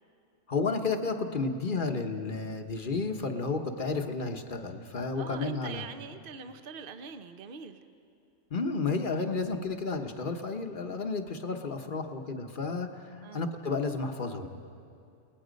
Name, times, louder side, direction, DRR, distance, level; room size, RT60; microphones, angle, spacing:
voice 1, 0.5-5.9 8.5-14.5, left 4 dB, 40° left, 5 dB, 1.2 m, -32 dB
voice 2, 5.1-7.8 13.2-13.5, right 6 dB, 45° right, 8 dB, 1.0 m, -43 dB
29.5 x 19.0 x 5.2 m, 2.6 s
omnidirectional pair, 1.4 m